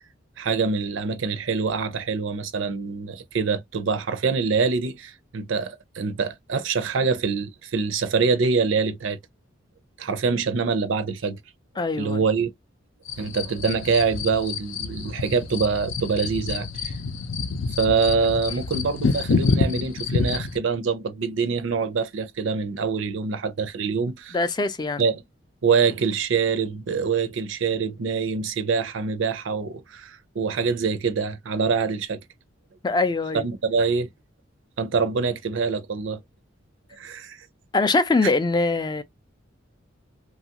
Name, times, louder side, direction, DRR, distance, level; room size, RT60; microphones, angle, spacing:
voice 1, 0.4-9.2 10.0-11.4 12.0-12.5 13.2-17.0 17.8-24.4 25.0-25.2 25.6-32.2 33.3-34.1 34.8-36.2 37.0-37.5 38.2-38.3, right 5 dB, 75° right, 0.5 m, -25 dB
voice 2, 11.8-12.2 24.3-25.0 32.8-33.4 37.7-39.0, left 3 dB, 20° left, 0.3 m, -22 dB
sound 1, 13.1-20.6, left 4 dB, 80° left, 0.5 m, -27 dB
3.0 x 2.3 x 2.8 m
head